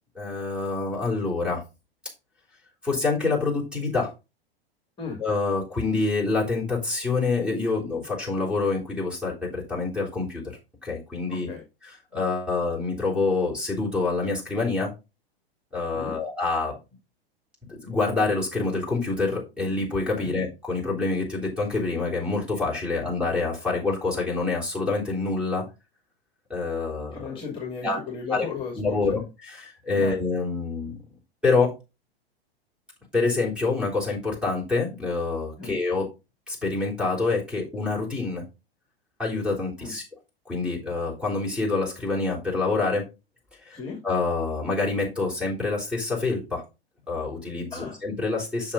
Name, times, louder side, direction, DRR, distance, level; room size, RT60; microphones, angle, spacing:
voice 1, 0.2-1.6 2.8-4.1 5.2-10.4 10.8-11.5 12.1-14.9 15.7-16.7 17.7-25.6 26.5-27.2 27.8-28.0 28.3-28.5 28.8-30.9 31.4-31.7 33.1-36.1 36.5-38.5 39.2-40.0 40.5-43.0 43.7-46.6 47.1-48.7, left 3 dB, 5° right, -6 dB, 3.5 m, -26 dB
voice 2, 11.3-11.6 15.9-16.2 20.1-20.3 27.1-29.2 30.0-30.2 35.6-35.8 39.8-39.9 43.7-44.0 47.7-48.0, left 5 dB, 15° left, 1 dB, 2.3 m, -35 dB
7.1 x 6.2 x 3.9 m, 0.27 s
figure-of-eight pair, 100°, 31 cm